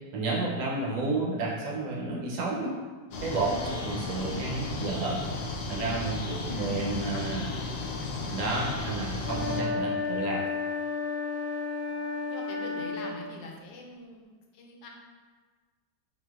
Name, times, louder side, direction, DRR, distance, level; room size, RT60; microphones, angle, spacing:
voice 1, 0.1-2.7 3.2-5.2 5.7-7.5 8.3-10.4, right 3 dB, 75° right, -4 dB, 1.2 m, -31 dB
sound 1, 3.1-9.6, left 3 dB, 70° left, 0.9 m, -34 dB
voice 2, 3.4-4.0 6.1-8.1 11.9-14.9, left 2 dB, 85° left, 0 dB, 1.2 m, -44 dB
sound 2, 9.2-13.2, left 4 dB, 30° right, 0.7 m, -32 dB
3.8 x 2.7 x 2.3 m, 1.4 s
omnidirectional pair, 1.9 m